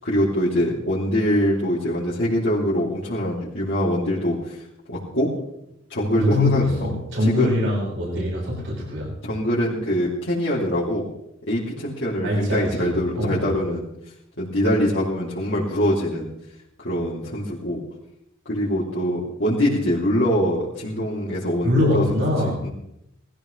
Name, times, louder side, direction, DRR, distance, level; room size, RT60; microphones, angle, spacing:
voice 1, 0.0-4.6 4.9-5.3 5.9-6.9 7.2-7.5 9.2-11.1 11.5-13.8 14.4-16.3 16.8-17.8 18.5-22.2 22.6-22.7, equal, 60° left, -8 dB, 3.3 m, -23 dB
voice 2, 6.1-9.1 12.2-13.5 21.6-22.7, left 1 dB, 70° right, -4 dB, 5.9 m, -23 dB
20.0 x 15.0 x 3.4 m, 0.81 s
head